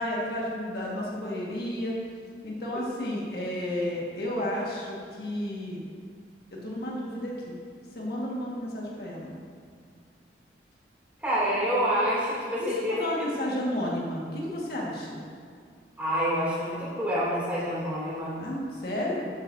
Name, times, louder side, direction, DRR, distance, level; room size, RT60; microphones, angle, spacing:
voice 1, 0.0-2.0 2.4-5.8 6.5-7.6 7.9-9.3 12.6-15.2 18.4-19.3, left 1 dB, 60° left, -4 dB, 1.7 m, -32 dB
voice 2, 11.2-12.9 16.0-18.3, equal, 10° right, -8 dB, 2.8 m, -27 dB
13.0 x 9.2 x 2.7 m, 2.1 s
head